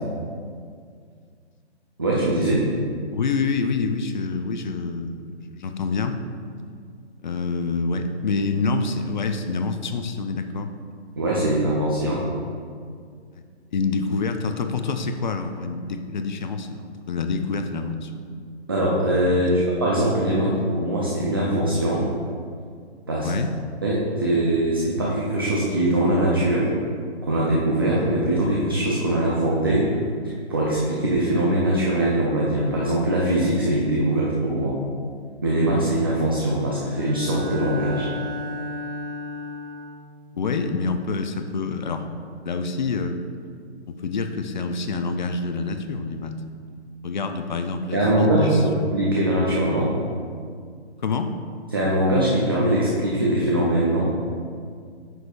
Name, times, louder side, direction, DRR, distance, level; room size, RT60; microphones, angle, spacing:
voice 1, 2.0-2.7 11.2-12.2 18.7-22.0 23.1-23.3 23.8-26.7 27.2-29.9 30.2-34.8 35.4-38.1 47.9-49.9 51.7-54.1, right 1 dB, 20° right, -5 dB, 0.4 m, -22 dB
voice 2, 3.1-6.2 7.2-10.7 13.3-13.4 13.7-18.1 19.5-19.6 23.2-23.5 40.4-42.1 42.4-43.2 43.9-46.4 47.0-48.6 51.0-51.3, left 4 dB, 45° left, 7 dB, 0.4 m, -27 dB
Bowed string instrument, 36.9-40.0, left 1 dB, 65° right, 1.6 m, -33 dB
7.7 x 6.2 x 2.3 m, 2.1 s
hypercardioid pair, 155°, 34 cm